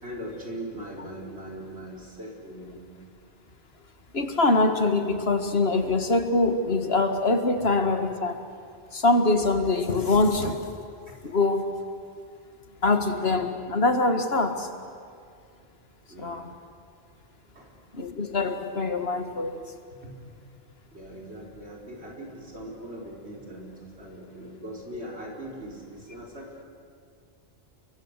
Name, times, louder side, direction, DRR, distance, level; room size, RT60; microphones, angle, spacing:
voice 1, 0.0-2.9 7.6-7.7 16.1-16.5 17.5-17.7 20.0-20.1 20.9-23.7 24.0-26.6, equal, 85° right, -1 dB, 5.0 m, -40 dB
voice 2, 4.1-8.4 8.9-10.7 11.2-11.7 12.8-14.7 16.2-16.5 17.9-19.6, left 2 dB, 70° left, 7 dB, 2.1 m, -24 dB
29.5 x 23.0 x 8.3 m, 2.3 s
omnidirectional pair, 1.1 m